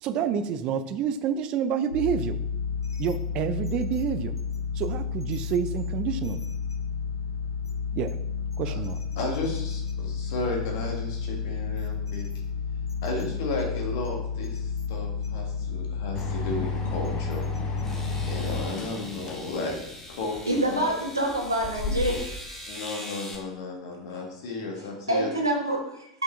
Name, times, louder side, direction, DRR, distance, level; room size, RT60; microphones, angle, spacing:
voice 1, 0.0-2.4 3.0-4.3 4.7-6.4 7.9-8.2 8.6-9.0, right 8 dB, 45° right, 11 dB, 0.5 m, -28 dB
sound 1, 1.9-18.6, left 6 dB, 90° left, 0.5 m, -31 dB
voice 2, 9.2-12.2 13.0-17.5 18.2-19.8 20.1-20.4 20.7-20.8 22.7-25.3, left 3 dB, 60° left, 1 dB, 1.8 m, -34 dB
sound 2, 16.1-22.4, left 2 dB, 30° left, 1.0 m, -34 dB
sound 3, 17.0-17.1 17.8-23.4, left 1 dB, 15° left, 1.9 m, -42 dB
voice 3, 20.5-22.1 25.1-26.1, right 1 dB, 90° right, 0 dB, 1.5 m, -26 dB
7.4 x 5.5 x 3.6 m, 0.81 s
figure-of-eight pair, 80°, 2 cm